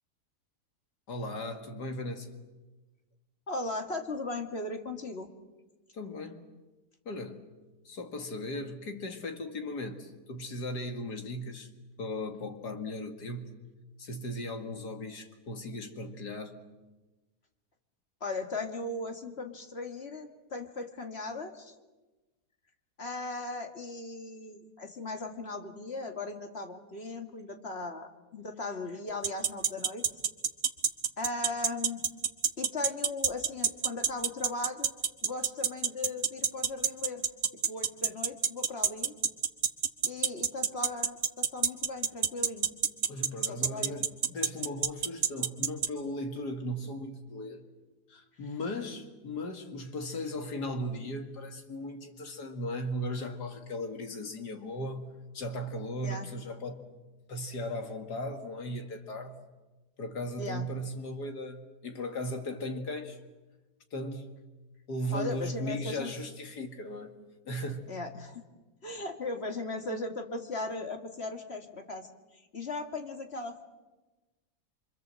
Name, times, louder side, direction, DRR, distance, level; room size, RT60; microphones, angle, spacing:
voice 1, 1.1-2.3 5.9-6.4 7.1-7.5 7.8-11.7 12.0-13.6 14.0-16.6 43.1-47.6 48.1-56.9 57.3-59.4 60.0-63.2 63.9-64.4 64.9-67.2 67.5-67.9, left 1 dB, 75° left, 5 dB, 2.7 m, -37 dB
voice 2, 3.5-5.3 18.2-21.8 23.0-30.0 31.2-32.0 32.6-34.9 35.2-37.2 37.7-39.1 40.1-42.7 43.4-44.0 56.0-56.3 60.4-60.7 65.1-66.1 67.9-68.4 68.8-72.1 72.5-73.6, left 3 dB, 40° left, 5 dB, 2.2 m, -37 dB
sound 1, 29.2-45.9, right 7 dB, 60° right, 1.5 m, -26 dB
26.5 x 25.0 x 7.6 m, 1.2 s
omnidirectional pair, 1.7 m